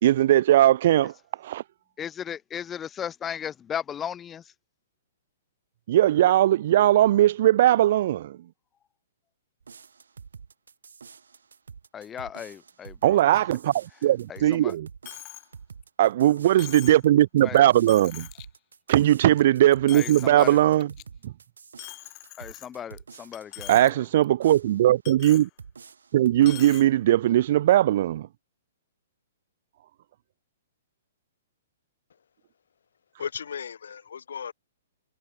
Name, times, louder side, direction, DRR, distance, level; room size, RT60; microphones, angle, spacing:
voice 1, 0.0-1.1 1.4-1.6 5.9-8.4 13.0-14.9 16.0-18.3 18.9-20.9 21.2-21.3 23.7-25.5 26.1-28.3, right 13 dB, 55° right, 3.2 m, -19 dB
voice 2, 2.0-4.4 11.9-13.4 14.3-14.7 17.4-17.6 19.9-20.6 22.4-24.0, left 8 dB, 20° left, 2.1 m, -36 dB
sound 1, 9.6-23.9 24.4-25.3 25.6-26.6, right 6 dB, 85° right, 6.9 m, -48 dB
Coin (dropping), 15.1-15.5 15.8-15.9 16.6-17.1 17.6-17.7 17.9-18.5 18.9-19.4 19.7-20.4 20.8-21.0 21.8-23.0 23.3-23.9 24.2-24.3 25.1-25.5 26.4-26.9, left 23 dB, 35° left, 6.9 m, -42 dB
voice 3, 33.2-34.5, left 7 dB, 75° left, 6.3 m, -35 dB
hypercardioid pair, 135°, 0 cm